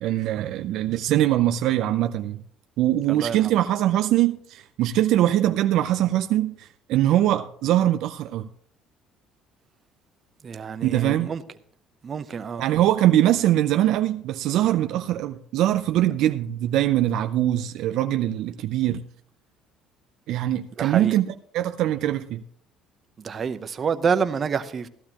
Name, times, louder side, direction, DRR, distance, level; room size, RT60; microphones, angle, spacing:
voice 1, 0.0-2.4 2.8-8.5 10.8-11.3 12.6-19.0 20.3-22.4, right 13 dB, 70° right, 0.5 m, -22 dB
voice 2, 3.1-3.6 10.4-11.4 12.0-12.6 20.8-21.1 23.2-24.9, right 6 dB, 40° right, 0.8 m, -28 dB
15.0 x 12.0 x 3.0 m
supercardioid pair, 90°, 0 cm